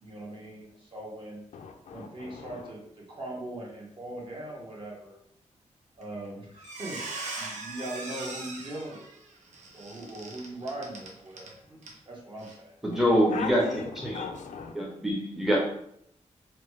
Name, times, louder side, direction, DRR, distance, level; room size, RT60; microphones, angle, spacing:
voice 1, 0.0-1.4 1.9-2.8 3.1-5.2 6.0-7.0 7.4-9.1 9.7-11.5 12.1-12.8, right 1 dB, 40° right, 1.1 m, -40 dB
voice 2, 1.5-2.6 12.9-13.0 13.3-14.7, left 5 dB, 75° left, 0.4 m, -38 dB
Squeak, 6.0-6.3 6.6-11.5 11.8-12.0 12.4-12.6, right 3 dB, 70° right, 0.7 m, -40 dB
voice 3, 12.8-13.6 14.0-14.3 14.7-15.6, equal, 5° right, 0.7 m, -25 dB
2.9 x 2.3 x 3.1 m
wide cardioid pair, 105°, 13 cm